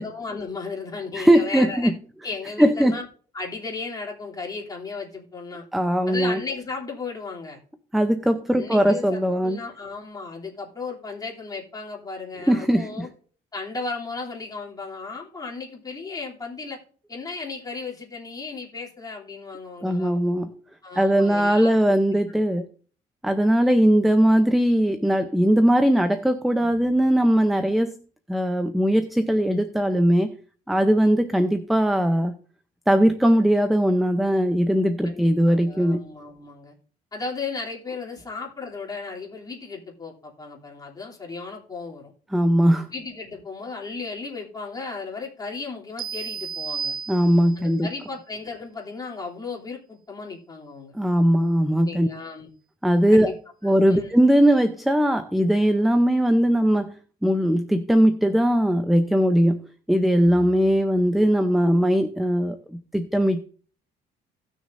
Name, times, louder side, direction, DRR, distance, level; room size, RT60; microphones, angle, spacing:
voice 1, 0.0-1.9 2.2-3.0 3.3-5.6 6.1-7.6 8.5-13.1 13.5-16.8 17.1-20.2 20.8-21.7 35.0-36.7 37.1-42.1 42.9-46.9 47.6-50.9 51.8-52.5 53.1-53.3 53.6-54.1, left 4 dB, 20° left, -2 dB, 2.9 m, -35 dB
voice 2, 1.1-1.9 2.6-3.0 5.7-6.4 7.9-9.6 12.5-13.1 19.8-20.5 20.9-22.7 23.2-27.9 28.3-30.3 30.7-32.3 32.9-36.0 42.3-42.9 47.1-47.9 50.9-52.1 52.8-53.3 53.6-56.9 57.2-59.6 59.9-63.5, equal, ahead, 9 dB, 0.6 m, -20 dB
sound 1, 46.0-47.7, right 6 dB, 55° right, 0.8 m, -32 dB
17.0 x 6.4 x 2.6 m, 0.42 s
cardioid pair, 110°, 17 cm